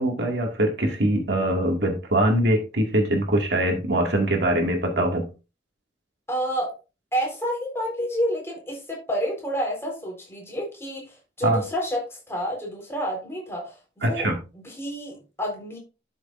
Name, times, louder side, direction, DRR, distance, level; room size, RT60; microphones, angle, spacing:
voice 1, 0.0-5.3 11.4-11.6 14.0-14.4, right 1 dB, 75° right, 2 dB, 2.0 m, -23 dB
voice 2, 6.3-6.7 7.1-14.3 14.6-15.8, equal, 15° left, -1 dB, 4.1 m, -29 dB
12.5 x 6.4 x 2.5 m, 0.30 s
head